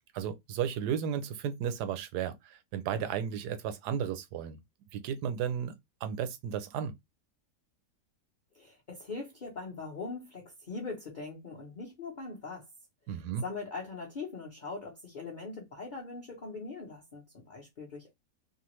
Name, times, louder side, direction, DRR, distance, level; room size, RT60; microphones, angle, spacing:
voice 1, 0.1-4.6 4.9-5.7 6.0-6.9 13.1-13.4, right 8 dB, 80° right, 1.1 m, -34 dB
voice 2, 8.5-12.7 13.4-18.1, left 3 dB, 40° left, 0.8 m, -41 dB
2.8 x 2.4 x 3.0 m
omnidirectional pair, 1.7 m